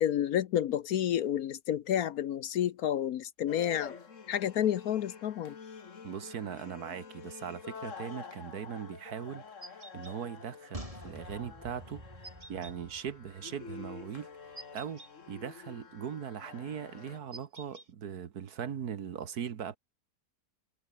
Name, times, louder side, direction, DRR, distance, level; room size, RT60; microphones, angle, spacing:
voice 1, 0.0-3.9 4.3-5.6, left 10 dB, 65° left, 1.1 m, -30 dB
sound 1, 3.5-17.2, left 5 dB, 45° left, 2.0 m, -48 dB
voice 2, 6.0-19.8, right 8 dB, 65° right, 1.7 m, -40 dB
sound 2, 9.6-10.2 12.2-12.8 14.6-15.1 17.3-17.9, right 2 dB, 35° right, 3.8 m, -49 dB
sound 3, 10.7-14.2 14.5-14.6, right 1 dB, 20° right, 6.1 m, -48 dB
omnidirectional pair, 1.8 m